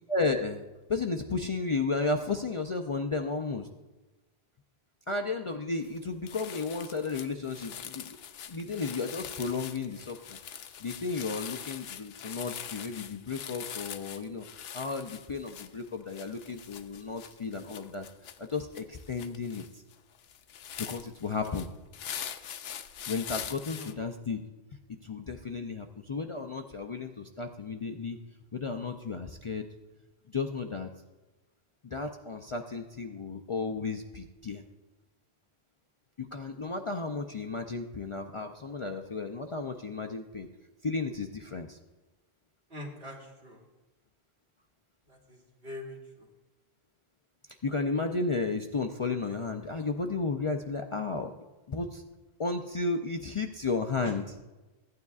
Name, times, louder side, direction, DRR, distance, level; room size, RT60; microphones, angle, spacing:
voice 1, 0.1-3.7 5.1-8.2 8.5-10.4 10.8-14.5 14.7-18.1 18.4-19.6 20.8-21.7 23.1-24.4 24.9-28.2 28.5-29.7 30.3-30.9 31.8-34.6 36.2-40.5 40.8-41.8 47.6-51.3 51.7-52.0 52.4-54.2, left 4 dB, 50° left, 3 dB, 0.4 m, -33 dB
sound 1, 5.8-6.0 6.3-23.9, left 9 dB, 75° left, 0.8 m, -43 dB
voice 2, 42.7-43.6 45.1-46.3 54.0-54.1, left 1 dB, 65° right, -2 dB, 2.1 m, -44 dB
15.0 x 9.3 x 2.4 m, 1.2 s
omnidirectional pair, 1.1 m